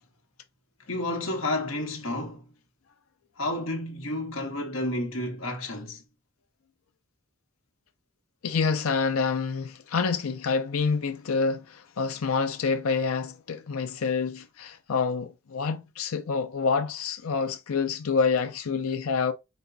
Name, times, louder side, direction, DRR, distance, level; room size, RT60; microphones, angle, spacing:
voice 1, 0.9-2.5 3.4-6.0, left 1 dB, 65° left, 1.4 m, -31 dB
voice 2, 8.4-19.3, left 5 dB, 80° left, 0.5 m, -27 dB
5.3 x 2.3 x 3.8 m
head